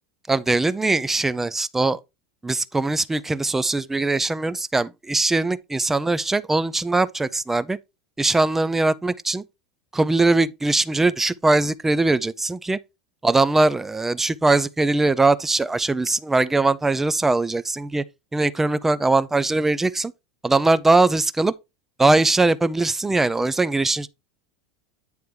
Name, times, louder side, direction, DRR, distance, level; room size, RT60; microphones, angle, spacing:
voice 1, 0.3-2.0 2.4-7.8 8.2-9.4 9.9-12.8 13.2-18.0 18.3-20.1 20.4-21.5 22.0-24.1, right 2 dB, 10° right, 0.4 m, -21 dB
9.6 x 3.4 x 4.7 m
supercardioid pair, 145°, 4 cm